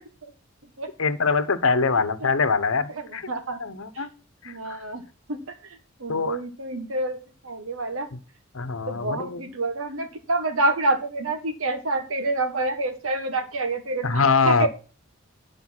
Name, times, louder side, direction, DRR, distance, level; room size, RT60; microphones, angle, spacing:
voice 1, 1.0-3.3 3.6-4.1 4.4-4.8 6.1-6.4 8.5-9.4 14.0-14.7, left 4 dB, 80° left, 13 dB, 1.0 m, -23 dB
voice 2, 2.9-3.6 3.9-4.1 4.4-5.0 5.3-7.2 7.4-8.1 8.9-14.7, right 2 dB, 85° right, 7 dB, 1.7 m, -28 dB
9.7 x 5.2 x 6.0 m, 0.37 s
head